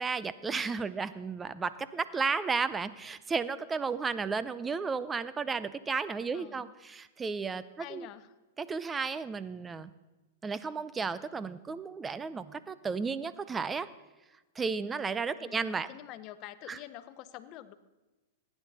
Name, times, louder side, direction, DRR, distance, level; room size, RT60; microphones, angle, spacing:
voice 1, 0.0-8.1 8.6-9.9 10.4-13.9 14.6-15.9 16.7-16.8, right 5 dB, 15° right, 15 dB, 0.6 m, -33 dB
voice 2, 6.3-6.7 7.8-8.4 15.4-17.7, left 13 dB, 40° left, 13 dB, 0.8 m, -47 dB
15.5 x 10.0 x 4.2 m, 1.2 s
hypercardioid pair, 120°, 0 cm